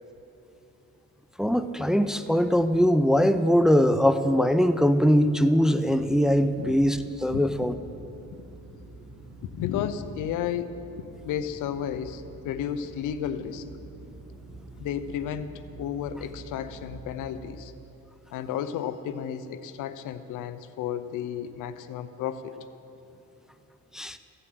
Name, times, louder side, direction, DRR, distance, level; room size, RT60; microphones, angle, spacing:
voice 1, 1.4-7.7 23.9-24.2, equal, ahead, 11 dB, 0.5 m, -21 dB
sound 1, 5.8-17.4, right 2 dB, 65° right, 2.4 m, -46 dB
voice 2, 9.5-10.7 11.2-13.6 14.8-17.7 18.3-22.5, left 9 dB, 90° left, 12 dB, 0.7 m, -32 dB
15.0 x 7.8 x 7.8 m, 2.9 s
cardioid pair, 90°, 30 cm